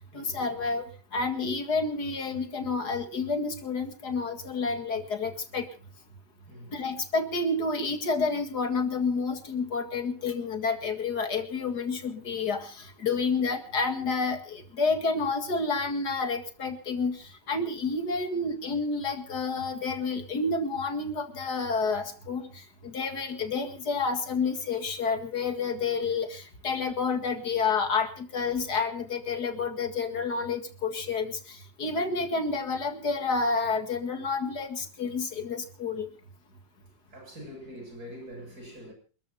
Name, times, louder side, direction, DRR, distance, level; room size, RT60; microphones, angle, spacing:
voice 1, 0.1-0.9 1.1-5.7 6.7-36.1, left 4 dB, 65° left, 2.6 m, -29 dB
voice 2, 6.5-6.9 31.8-32.1 37.1-38.9, equal, 60° right, 8.6 m, -44 dB
28.0 x 14.0 x 2.9 m
omnidirectional pair, 1.9 m